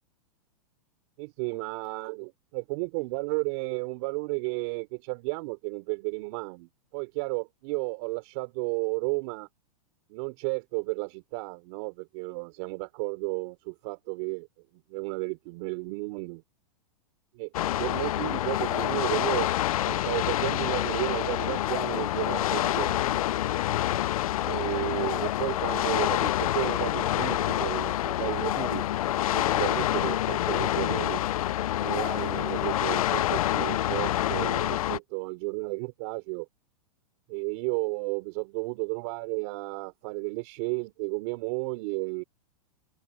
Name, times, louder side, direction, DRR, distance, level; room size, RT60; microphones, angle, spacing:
voice 1, 1.2-9.5 10.1-14.5 14.7-16.4 17.3-17.5 17.8-19.5 19.8-23.2 24.4-28.9 29.2-31.2 31.8-36.5 37.3-42.2, right 31 dB, 50° right, 3.9 m, -33 dB
sound 1, 17.5-35.0, left 13 dB, 75° left, 0.6 m, -27 dB
hypercardioid pair, 140°, 18 cm